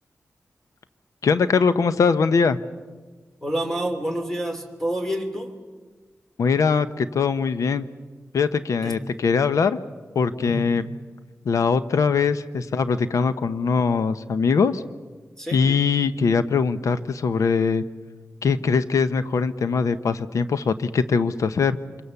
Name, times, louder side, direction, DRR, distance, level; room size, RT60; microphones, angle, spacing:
voice 1, 1.2-2.6 6.4-7.8 8.3-9.8 10.1-10.8 11.4-14.8 15.5-17.8 18.4-21.8, left 5 dB, 80° left, 12 dB, 0.9 m, -21 dB
voice 2, 3.4-5.6 8.8-9.0 10.4-10.7 15.4-15.6, right 1 dB, 10° left, 4 dB, 3.0 m, -28 dB
26.5 x 23.0 x 7.1 m, 1.4 s
wide cardioid pair, 105°, 5 cm